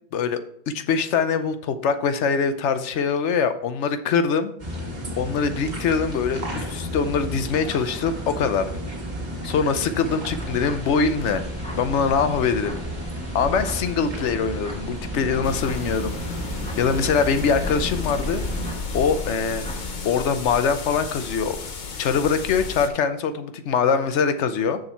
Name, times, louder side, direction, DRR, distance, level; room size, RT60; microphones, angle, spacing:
voice 1, 0.1-4.5 5.2-8.7 9.4-11.4 11.8-12.8 13.3-16.5 16.8-18.4 18.9-19.7 20.0-21.6 22.0-24.8, left 6 dB, 80° left, 10 dB, 1.0 m, -23 dB
sound 1, 4.6-18.8, equal, 40° right, 1.8 m, -32 dB
sound 2, 10.3-20.0, equal, 5° left, 1.3 m, -39 dB
sound 3, 15.4-22.9, left 4 dB, 45° left, 0.8 m, -33 dB
7.1 x 6.4 x 4.5 m, 0.68 s
omnidirectional pair, 1.2 m